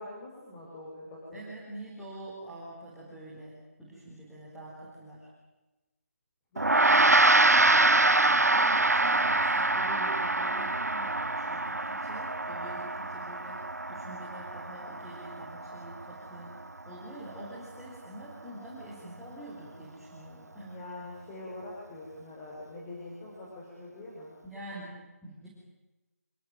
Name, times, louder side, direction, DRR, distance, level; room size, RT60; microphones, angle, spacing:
voice 1, 0.0-1.4 6.5-8.6 20.6-24.3, left 2 dB, 20° left, -5 dB, 5.4 m, -44 dB
voice 2, 1.3-5.3 8.5-16.5 16.8-20.7 24.4-25.5, right 1 dB, ahead, -10 dB, 4.6 m, -45 dB
Gong, 6.6-16.2, right 2 dB, 85° right, 0.8 m, -25 dB
27.0 x 18.0 x 9.1 m, 1.1 s
figure-of-eight pair, 160°, 8 cm